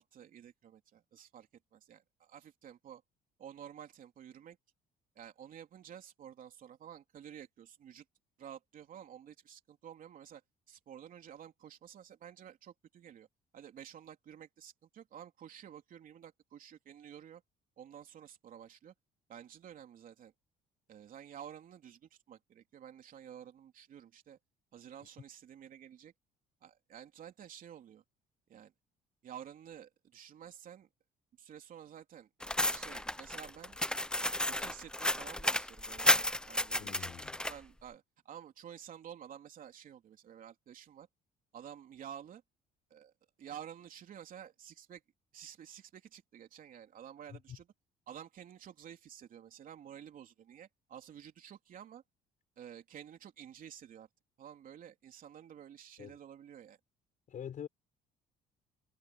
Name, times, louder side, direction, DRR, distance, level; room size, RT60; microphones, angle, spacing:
voice 1, 0.0-3.0 3.4-4.6 5.1-8.0 8.4-10.4 10.7-13.3 13.5-17.4 17.8-18.9 19.3-20.3 20.9-24.4 24.7-26.1 26.6-28.0 28.5-28.7 29.2-30.9 31.4-33.8 34.4-37.1 37.5-41.1 41.5-42.4 42.9-43.1 43.4-45.0 45.3-47.7 48.1-52.0 52.6-54.1 54.4-56.8, right 9 dB, 55° right, 3.4 m, -51 dB
sound 1, 32.4-37.5, left 1 dB, 5° left, 0.7 m, -32 dB
voice 2, 36.7-37.4 47.3-47.6 56.0-56.2 57.3-57.7, left 9 dB, 50° left, 6.3 m, -45 dB
cardioid pair, 110°, 17 cm